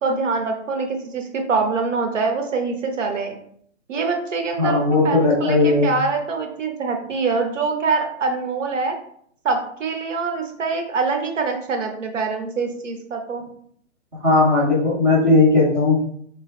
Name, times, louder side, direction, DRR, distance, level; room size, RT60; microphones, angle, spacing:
voice 1, 0.0-3.4 3.9-9.0 9.4-13.4, right 4 dB, 85° right, 3 dB, 1.1 m, -24 dB
voice 2, 4.6-5.9 14.2-16.0, left 3 dB, 5° right, -9 dB, 0.7 m, -17 dB
4.9 x 3.2 x 3.1 m, 0.64 s
hypercardioid pair, 170°, 37 cm